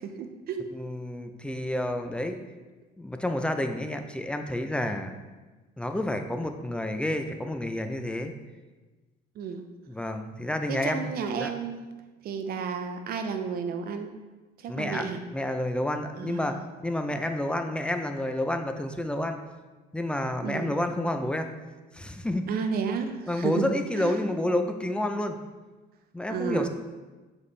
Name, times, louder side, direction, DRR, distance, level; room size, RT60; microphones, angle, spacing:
voice 1, 0.0-0.7 9.4-9.6 10.7-11.8 12.2-14.1 14.6-15.2 16.2-16.5 17.1-17.2 20.4-20.7 22.5-24.2 26.3-26.7, right 6 dB, 65° right, 7 dB, 0.6 m, -32 dB
voice 2, 0.7-2.4 3.0-5.1 5.8-8.3 9.9-11.1 11.4-11.5 14.7-15.0 15.3-16.6 16.8-19.4 19.9-21.5 21.9-22.5 23.3-25.4 26.1-26.7, left 1 dB, 5° left, 6 dB, 0.4 m, -29 dB
7.0 x 4.1 x 3.3 m, 1.2 s
cardioid pair, 110°, 17 cm